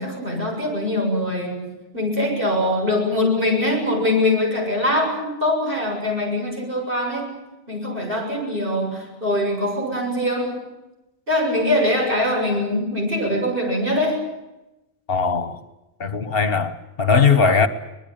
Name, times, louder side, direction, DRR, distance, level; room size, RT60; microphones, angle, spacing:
voice 1, 0.0-7.3 7.7-10.7 11.3-14.2, left 1 dB, 55° right, 7.5 m, -23 dB
voice 2, 15.1-15.6 16.0-17.7, left 5 dB, 60° left, 1.5 m, -19 dB
24.5 x 20.5 x 8.9 m
omnidirectional pair, 1.1 m